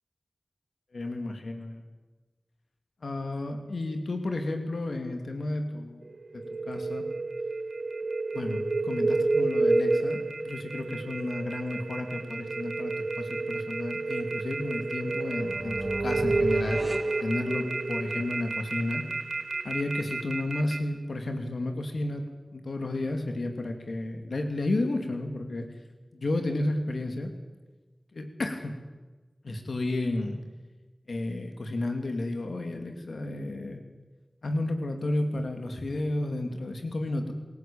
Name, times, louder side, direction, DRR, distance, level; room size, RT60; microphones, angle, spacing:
voice 1, 0.9-1.8 3.0-6.0 6.3-7.0 8.3-16.8 17.2-19.0 19.6-22.2 22.5-25.7 26.1-27.3 28.1-28.7 29.4-30.4 31.1-33.8 34.4-37.3, left 2 dB, 85° left, 5 dB, 2.7 m, -32 dB
sound 1, 6.0-20.8, right 3 dB, 75° right, 4.3 m, -30 dB
sound 2, 15.1-18.1, equal, 5° right, 2.0 m, -38 dB
27.5 x 16.0 x 8.8 m, 1.2 s
wide cardioid pair, 50°, 0 cm